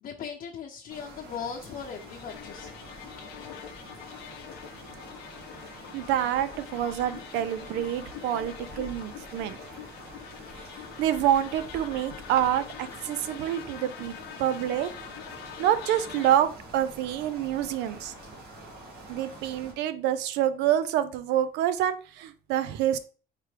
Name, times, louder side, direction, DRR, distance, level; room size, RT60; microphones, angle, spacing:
voice 1, 0.0-2.7 3.4-3.5, left 7 dB, 55° left, -1 dB, 0.7 m, -38 dB
sound 1, 0.9-19.7, right 1 dB, 60° right, 2.1 m, -46 dB
sound 2, 1.8-16.3, left 9 dB, 85° left, 0.7 m, -44 dB
voice 2, 5.9-9.6 11.0-14.9 15.6-18.1 19.1-23.0, right 11 dB, 90° right, 13 dB, 0.5 m, -27 dB
4.7 x 3.3 x 3.2 m, 0.37 s
cardioid pair, 110°, 17 cm